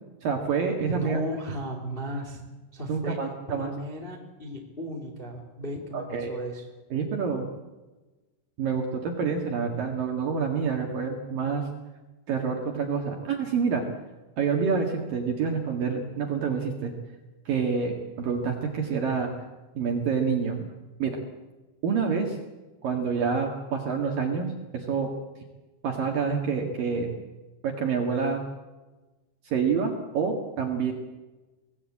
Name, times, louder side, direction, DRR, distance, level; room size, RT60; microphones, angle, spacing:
voice 1, 0.2-1.2 2.9-3.7 5.9-6.3 6.9-7.5 8.6-11.6 12.3-13.8 14.4-16.9 17.5-19.3 19.8-20.7 21.0-21.2 21.8-22.4 22.8-24.5 24.7-25.1 25.8-27.1 27.6-28.4 29.4-30.9, right 5 dB, 55° right, 3 dB, 2.9 m, -27 dB
voice 2, 0.8-2.4 2.7-3.2 3.5-6.6, equal, 15° left, 3 dB, 2.1 m, -35 dB
24.0 x 18.5 x 8.6 m, 1.2 s
omnidirectional pair, 6.0 m